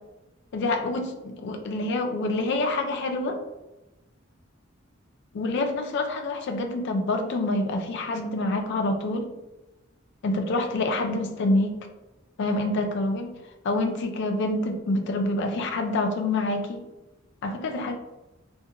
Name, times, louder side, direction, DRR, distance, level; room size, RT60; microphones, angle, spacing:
voice 1, 0.5-3.4 5.3-9.3 10.2-11.7 12.4-13.3 13.6-16.8 17.4-17.9, left 2 dB, 60° left, 5 dB, 0.4 m, -27 dB
2.4 x 2.2 x 2.8 m, 1.0 s
head